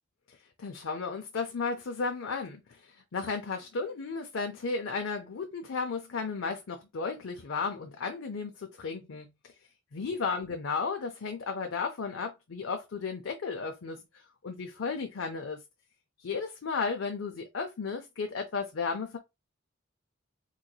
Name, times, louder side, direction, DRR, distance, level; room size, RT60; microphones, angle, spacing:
voice 1, 0.3-9.3 9.9-15.6 16.2-19.2, left 4 dB, 80° left, 0.5 m, -34 dB
3.7 x 3.1 x 2.3 m
head